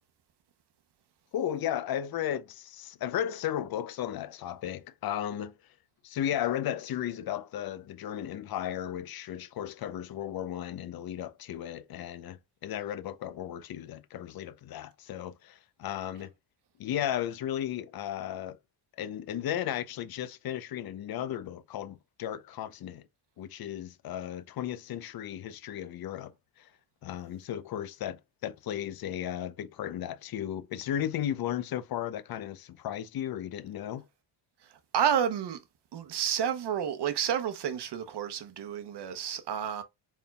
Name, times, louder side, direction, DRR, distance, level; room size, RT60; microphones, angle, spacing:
voice 1, 1.3-5.5 6.0-16.3 16.8-18.6 19.0-23.1 23.4-26.7 27.0-34.1, left 11 dB, 45° left, 0.6 m, -35 dB
voice 2, 34.9-35.6 35.9-39.8, right 8 dB, 55° right, 0.9 m, -30 dB
4.6 x 3.5 x 2.3 m
cardioid pair, 90°, 50 cm